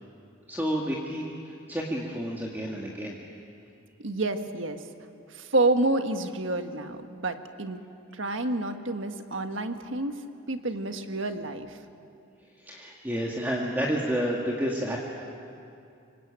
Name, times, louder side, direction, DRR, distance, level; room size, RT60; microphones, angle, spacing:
voice 1, 0.5-3.2 12.6-15.0, equal, 10° right, -3 dB, 2.1 m, -30 dB
voice 2, 4.0-4.8 5.3-7.8 8.1-10.1 10.5-11.7, right 2 dB, 70° right, 7 dB, 1.6 m, -28 dB
26.5 x 24.0 x 9.0 m, 2.6 s
head